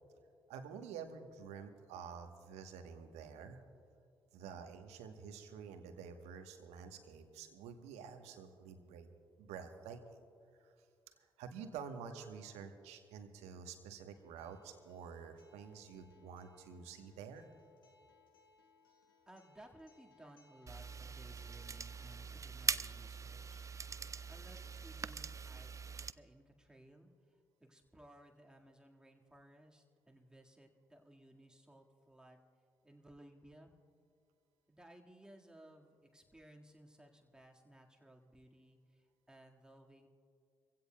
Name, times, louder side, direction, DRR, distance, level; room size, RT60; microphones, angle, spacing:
voice 1, 0.5-3.6 4.3-9.1 9.4-10.2 10.6-10.7 11.4-17.5, right 6 dB, 70° right, 7 dB, 1.1 m, -49 dB
Acoustic guitar, 14.1-22.1, left 4 dB, 90° left, 1.0 m, -69 dB
voice 2, 19.3-23.7 24.3-32.4 32.8-33.7 34.7-40.1, right 1 dB, 5° right, 1 dB, 1.8 m, -60 dB
sound 1, 20.7-26.1, right 5 dB, 30° right, 0.4 m, -42 dB
24.5 x 16.0 x 2.3 m, 2.3 s
figure-of-eight pair, 40°, 11 cm